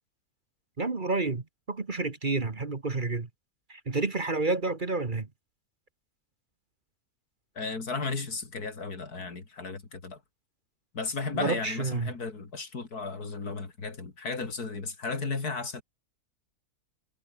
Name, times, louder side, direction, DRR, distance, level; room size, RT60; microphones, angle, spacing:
voice 1, 0.8-3.3 3.7-5.3 11.3-12.1, right 3 dB, 35° right, 1.7 m, -30 dB
voice 2, 7.6-10.2 10.9-15.8, left 4 dB, 85° left, 3.7 m, -34 dB
omnidirectional pair, 1.6 m